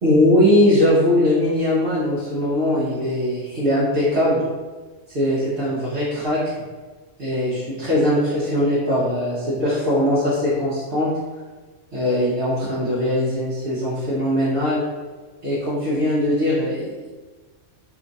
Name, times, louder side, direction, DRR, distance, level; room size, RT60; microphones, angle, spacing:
voice 1, 0.0-4.4 5.1-6.4 7.2-11.1 11.9-14.8 15.4-17.1, left 1 dB, 55° right, -9 dB, 1.1 m, -20 dB
3.0 x 2.4 x 3.9 m, 1.3 s
omnidirectional pair, 1.3 m